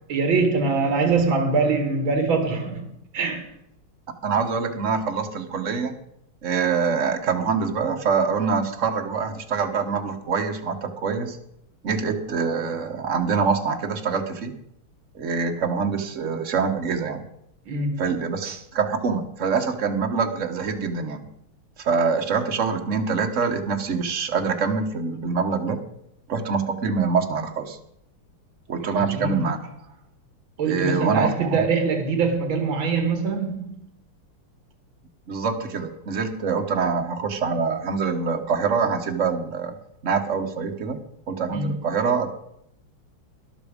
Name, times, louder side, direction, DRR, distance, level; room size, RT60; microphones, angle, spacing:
voice 1, 0.1-3.5 17.6-18.1 28.8-29.4 30.6-33.9 41.5-41.7, right 4 dB, 65° right, 2.8 m, -23 dB
voice 2, 4.2-6.0 6.4-11.4 11.8-14.6 15.1-17.2 18.0-21.2 21.8-25.8 26.3-27.8 28.7-29.6 30.6-31.6 35.3-39.7 40.0-41.0 41.3-42.3, right 5 dB, 40° right, 1.4 m, -25 dB
13.5 x 11.0 x 5.1 m
omnidirectional pair, 2.4 m